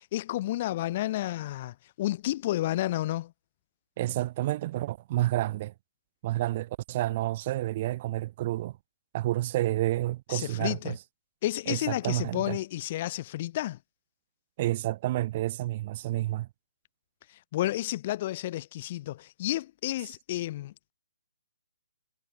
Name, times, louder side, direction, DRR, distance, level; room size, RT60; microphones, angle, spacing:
voice 1, 0.0-3.3 10.3-11.0 11.4-13.8 17.3-20.9, left 15 dB, 35° left, 0.8 m, -31 dB
voice 2, 4.0-5.7 6.2-8.8 9.1-11.0 11.7-12.6 14.6-16.5, right 15 dB, 35° right, 0.8 m, -29 dB
hypercardioid pair, 155°, 0 cm